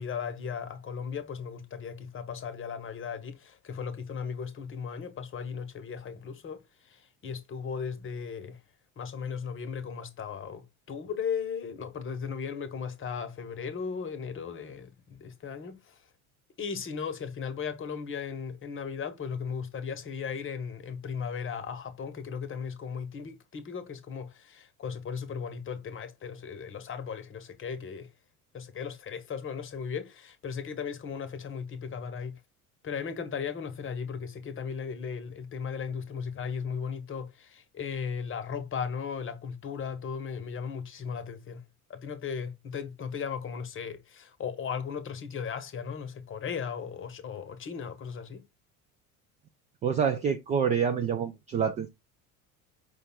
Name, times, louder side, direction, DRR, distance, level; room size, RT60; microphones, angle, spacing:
voice 1, 0.0-8.6 9.0-16.0 16.6-28.1 28.5-32.4 32.8-41.6 41.9-48.4, left 6 dB, 25° left, 0.9 m, -36 dB
voice 2, 49.8-51.9, right 7 dB, 20° right, 0.3 m, -27 dB
5.1 x 2.3 x 4.0 m
figure-of-eight pair, 65°, 45 cm